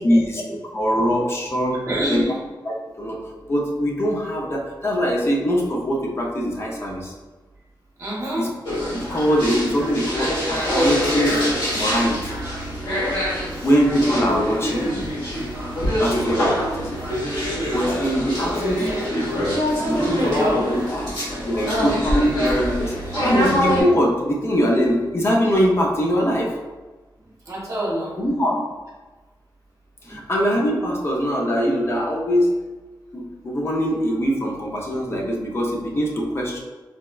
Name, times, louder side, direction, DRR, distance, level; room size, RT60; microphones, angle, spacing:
voice 1, 0.0-0.4 0.7-1.8 2.1-2.2 2.6-3.2 3.5-7.1 8.4-8.5 8.9-11.4 11.7-12.3 13.6-15.0 16.0-17.0 17.7-19.5 19.8-21.1 21.5-22.9 23.2-26.5 28.2-28.6 30.1-32.5 33.1-36.6, equal, 30° left, -2 dB, 0.5 m, -22 dB
voice 2, 1.9-2.3 8.0-8.5 13.5-13.7 20.0-20.4 20.9-21.7 27.5-28.1 30.0-30.2, right 1 dB, 40° right, -5 dB, 0.8 m, -28 dB
sound 1, 8.6-23.8, equal, 90° left, 1.4 m, -24 dB
3.9 x 2.1 x 2.3 m, 1.2 s
wide cardioid pair, 175°, 8 cm